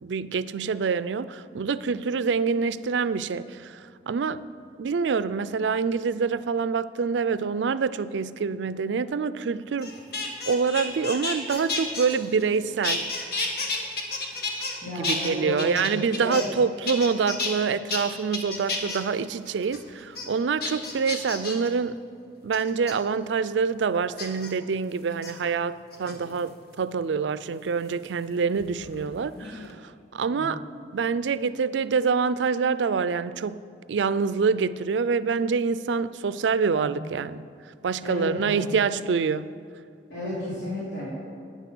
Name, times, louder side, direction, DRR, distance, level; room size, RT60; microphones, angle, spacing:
voice 1, 0.0-3.8 4.1-4.4 4.8-9.9 10.5-13.3 15.0-22.0 22.4-30.6 30.9-33.6 33.9-37.5 37.8-39.5, right 5 dB, 90° right, 0.4 m, -26 dB
sound 1, 9.8-12.6 12.8-14.8 15.0-16.6 16.9-17.5 17.9-18.0 18.3-19.0 19.5-19.8 20.2-20.3 20.6-21.7 22.5-22.9 24.2-24.5 25.1-25.3 25.9-26.5 27.9-29.1 29.4-29.7, left 3 dB, 60° left, 1.6 m, -31 dB
voice 2, 14.8-15.9 16.2-16.5 30.3-30.5 36.7-37.0 38.0-38.7 40.1-41.1, left 1 dB, 80° left, 3.6 m, -33 dB
10.5 x 9.8 x 6.1 m
head